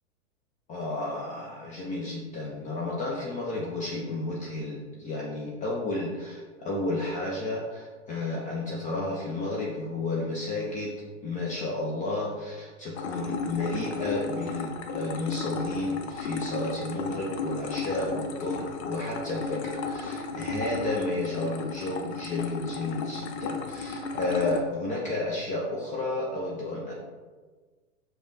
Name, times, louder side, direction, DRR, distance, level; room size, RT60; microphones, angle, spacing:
voice 1, 0.7-10.9 11.2-26.9, left 2 dB, 20° left, -3 dB, 0.5 m, -32 dB
sound 1, 12.9-24.6, left 4 dB, 65° left, 0.6 m, -34 dB
4.9 x 2.4 x 3.9 m, 1.4 s
hypercardioid pair, 105°, 37 cm